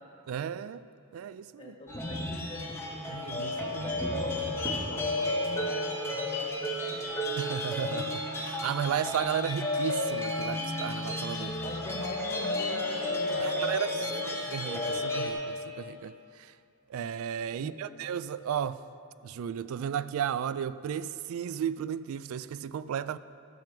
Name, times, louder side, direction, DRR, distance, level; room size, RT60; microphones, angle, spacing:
voice 1, 0.3-0.9 1.1-1.8 3.1-3.9 7.4-11.6 13.4-16.5 16.9-18.8 19.2-23.2, right 8 dB, 70° right, 0.3 m, -34 dB
voice 2, 1.6-4.5 4.8-7.0 11.6-14.3 17.5-18.0, left 1 dB, 30° left, 1.4 m, -42 dB
sound 1, 1.9-15.3, left 1 dB, 10° left, 1.1 m, -32 dB
12.0 x 7.7 x 4.5 m
head